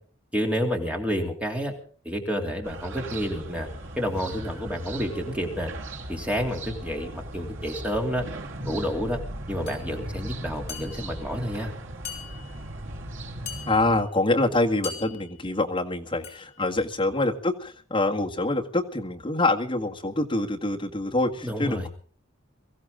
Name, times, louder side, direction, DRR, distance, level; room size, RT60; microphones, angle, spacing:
voice 1, 0.3-1.7 2.0-3.7 4.0-5.7 6.1-8.2 8.6-9.2 9.5-11.7 21.4-21.9, equal, 5° right, 1 dB, 2.9 m, -29 dB
sound 1, 2.6-14.0, right 1 dB, 65° right, 2.3 m, -38 dB
sound 2, 9.7-9.9 10.7-11.2 12.0-12.7 13.5-14.1 14.8-15.5 16.2-16.6, left 7 dB, 50° left, 5.7 m, -40 dB
voice 2, 13.7-21.9, left 2 dB, 25° left, 1 dB, 1.9 m, -25 dB
23.0 x 15.5 x 3.8 m, 0.43 s
head